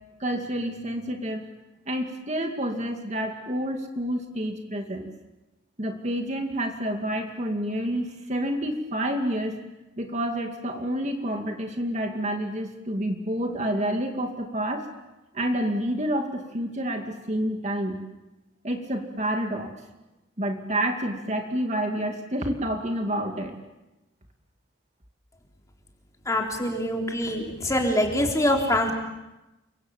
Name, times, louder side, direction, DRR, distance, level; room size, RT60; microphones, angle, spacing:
voice 1, 0.2-1.5 1.9-5.1 5.8-9.6 10.0-14.9 15.3-18.0 18.6-19.7 20.4-23.6, right 1 dB, 35° right, 3 dB, 2.4 m, -29 dB
voice 2, 26.3-28.9, left 1 dB, 15° left, 1 dB, 3.8 m, -24 dB
29.5 x 25.0 x 7.4 m, 1.0 s
head